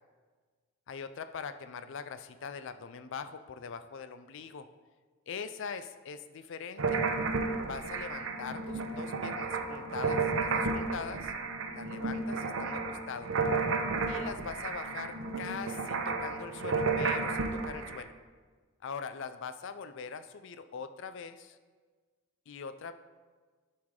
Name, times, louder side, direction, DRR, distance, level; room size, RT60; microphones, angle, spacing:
voice 1, 0.9-4.7 5.3-7.0 7.7-11.3 11.7-13.3 14.1-18.1 18.8-21.6 22.5-22.9, left 6 dB, 55° left, 11 dB, 0.4 m, -42 dB
sound 1, 6.8-18.0, right 4 dB, 60° right, 0.7 m, -32 dB
11.0 x 4.8 x 3.7 m, 1.4 s
head